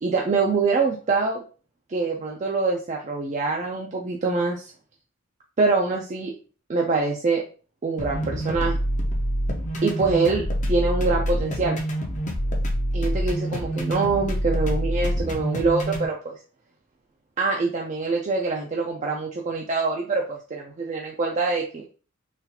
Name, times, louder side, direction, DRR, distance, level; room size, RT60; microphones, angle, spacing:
voice 1, 0.0-1.4 1.9-4.7 5.6-6.3 6.7-7.4 7.8-8.8 9.8-11.8 12.9-16.3 17.4-21.8, right 4 dB, 35° right, -1 dB, 0.4 m, -24 dB
sound 1, 8.0-16.0, equal, 35° left, 0.6 m, -26 dB
3.9 x 2.4 x 2.8 m, 0.38 s
head